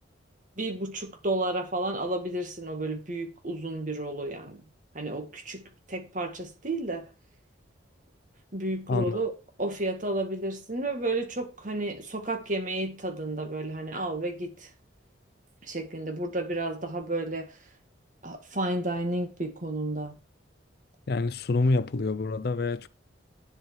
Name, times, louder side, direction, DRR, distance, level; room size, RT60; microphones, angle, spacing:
voice 1, 0.6-4.6 4.9-7.1 8.5-9.3 9.6-14.7 15.6-17.6 18.2-20.1, right 2 dB, 40° right, 2.1 m, -32 dB
voice 2, 8.9-9.2 21.1-22.9, left 3 dB, 50° left, 0.5 m, -27 dB
9.7 x 7.6 x 4.7 m
head